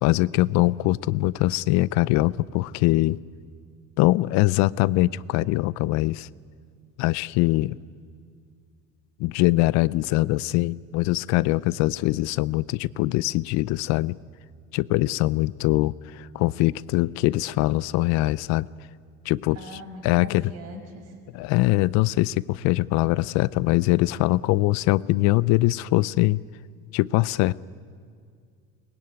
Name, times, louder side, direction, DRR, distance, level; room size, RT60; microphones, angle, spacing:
voice 1, 0.0-3.2 4.0-6.3 7.0-7.8 9.2-14.2 14.7-18.7 19.3-19.6 20.0-20.4 21.3-26.4 26.9-27.5, left 19 dB, 65° left, 19 dB, 0.5 m, -22 dB
voice 2, 19.5-21.1, right 1 dB, 55° right, 4 dB, 5.8 m, -41 dB
22.5 x 20.5 x 9.3 m, 2.2 s
cardioid pair, 135°, 30 cm